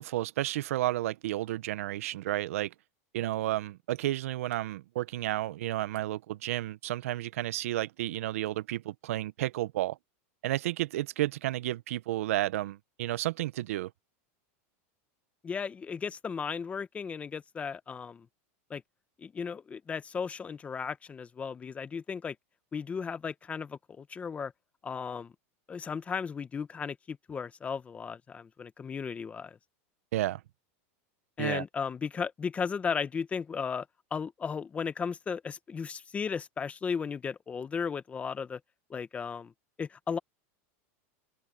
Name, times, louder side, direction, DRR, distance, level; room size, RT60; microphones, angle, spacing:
voice 1, 0.0-2.7 3.1-10.0 10.4-13.9 30.1-30.4 31.4-31.6, right 15 dB, 85° right, 0.6 m, -32 dB
voice 2, 15.4-18.3 18.7-18.8 19.2-22.3 22.7-24.5 24.8-25.3 25.7-29.6 31.4-33.9 34.1-38.6 38.9-39.5 39.8-40.2, left 6 dB, 15° left, 0.9 m, -35 dB
open air
supercardioid pair, 140°, 7 cm